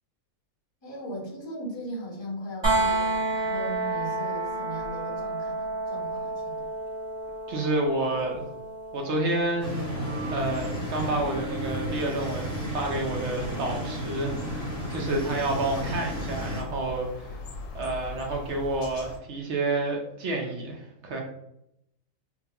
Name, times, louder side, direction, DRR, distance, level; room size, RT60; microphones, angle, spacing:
voice 1, 0.8-6.7, right 1 dB, 20° left, -4 dB, 1.0 m, -38 dB
sound 1, 2.6-14.4 16.4-16.5, right 2 dB, 20° right, 0.9 m, -32 dB
voice 2, 7.5-8.4 8.9-9.9 10.3-17.3 17.7-21.2, right 2 dB, 65° right, 1 dB, 0.8 m, -29 dB
sound 2, 9.6-16.6, equal, 85° right, 2.0 m, -33 dB
sound 3, 10.4-19.2, left 1 dB, 75° left, 1.0 m, -41 dB
3.7 x 2.2 x 2.8 m, 0.78 s
omnidirectional pair, 1.4 m